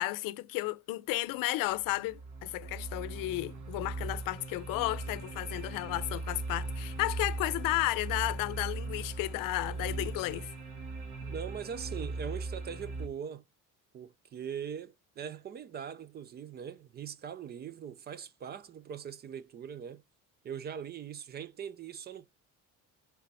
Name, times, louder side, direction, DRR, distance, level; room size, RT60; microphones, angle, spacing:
voice 1, 0.0-10.5, left 18 dB, 80° left, 0.6 m, -33 dB
sound 1, 1.1-1.2 1.7-13.1, right 3 dB, 75° right, 1.7 m, -39 dB
voice 2, 11.2-13.4 13.9-20.0 20.4-22.3, right 8 dB, 30° right, 0.4 m, -41 dB
6.8 x 3.4 x 5.2 m
cardioid pair, 155°, 33 cm